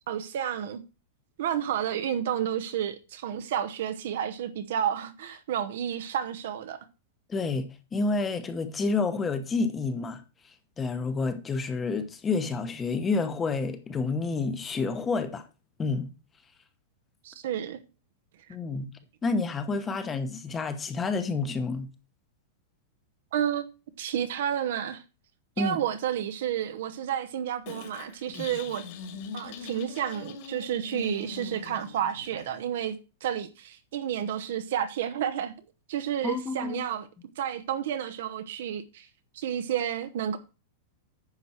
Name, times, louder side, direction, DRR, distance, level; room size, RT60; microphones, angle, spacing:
voice 1, 0.1-0.8 1.4-6.8 17.2-17.8 23.3-23.6 24.0-25.0 25.6-28.8 29.3-33.0 33.2-35.5 35.9-37.1 37.4-39.1 39.3-40.4, right 9 dB, 65° right, 0.8 m, -31 dB
voice 2, 7.3-10.2 10.8-15.5 15.8-16.1 18.5-18.9 19.2-21.9 25.6-25.8 28.3-28.5 36.2-36.8, left 3 dB, 15° left, 1.0 m, -29 dB
sound 1, 27.7-32.6, left 6 dB, 50° left, 2.2 m, -42 dB
9.8 x 6.1 x 4.3 m
supercardioid pair, 160°, 0 cm